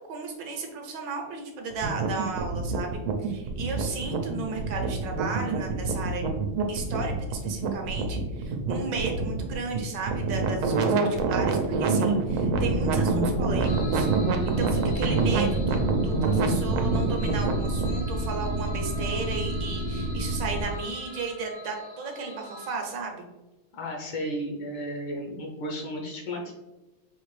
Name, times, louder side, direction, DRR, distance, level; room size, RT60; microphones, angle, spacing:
voice 1, 0.1-6.3 6.7-14.1 14.4-23.3, right 4 dB, 65° right, 2 dB, 1.4 m, -34 dB
sound 1, 1.7-18.0, right 3 dB, 85° right, 1.5 m, -27 dB
sound 2, 12.5-20.6, right 1 dB, 90° left, 2.5 m, -30 dB
sound 3, 13.6-22.7, left 2 dB, 60° left, 0.7 m, -44 dB
voice 2, 23.7-26.5, equal, 75° left, 0 dB, 1.5 m, -34 dB
5.8 x 2.9 x 3.1 m, 1.1 s
omnidirectional pair, 2.3 m